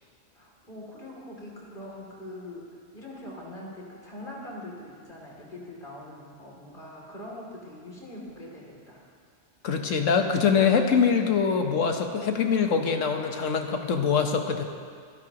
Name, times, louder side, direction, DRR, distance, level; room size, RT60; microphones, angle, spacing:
voice 1, 0.3-9.0, left 1 dB, 45° left, -3 dB, 3.0 m, -42 dB
voice 2, 9.6-14.6, left 6 dB, 85° left, 5 dB, 1.4 m, -24 dB
26.0 x 11.0 x 3.0 m, 2.1 s
omnidirectional pair, 1.3 m